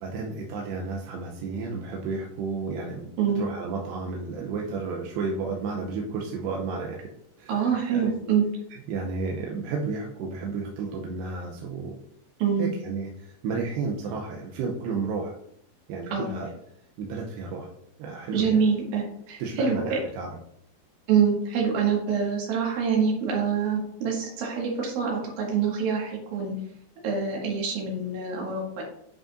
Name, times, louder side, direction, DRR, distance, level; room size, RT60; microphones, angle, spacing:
voice 1, 0.0-7.0 7.4-8.1 8.7-12.0 12.6-15.4 15.9-16.5 17.0-17.7 18.0-18.6 19.4-20.4, right 4 dB, 80° right, 0 dB, 2.6 m, -32 dB
voice 2, 7.5-8.4 12.4-12.7 16.1-16.3 18.3-20.0 21.1-26.5 27.0-28.8, right 6 dB, 60° right, -2 dB, 3.2 m, -25 dB
10.5 x 4.9 x 2.5 m, 0.71 s
omnidirectional pair, 5.3 m